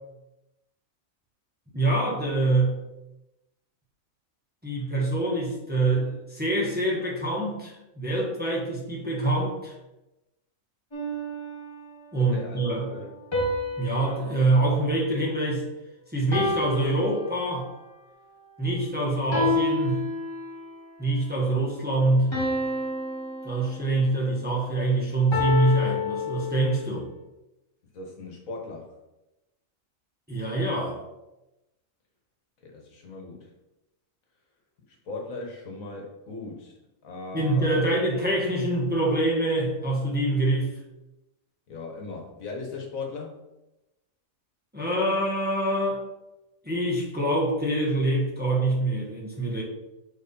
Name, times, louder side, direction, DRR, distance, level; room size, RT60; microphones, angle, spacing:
voice 1, 1.7-2.8 4.6-9.7 12.1-12.9 13.8-15.7 16.1-17.7 18.6-20.1 21.0-22.4 23.4-27.1 30.3-31.0 37.3-40.7 44.7-46.0 46.6-49.6, right 2 dB, 5° right, -4 dB, 1.3 m, -25 dB
sound 1, 10.9-12.1 13.3-15.7 16.3-17.8 19.3-20.8 22.3-24.2 25.3-26.9, left 2 dB, 20° left, 1.4 m, -30 dB
voice 2, 12.2-12.6 12.9-13.1 27.9-28.9 32.6-33.5 34.9-37.8 41.7-43.4, left 3 dB, 75° left, 1 dB, 1.6 m, -38 dB
4.6 x 4.4 x 5.4 m, 0.97 s
omnidirectional pair, 1.4 m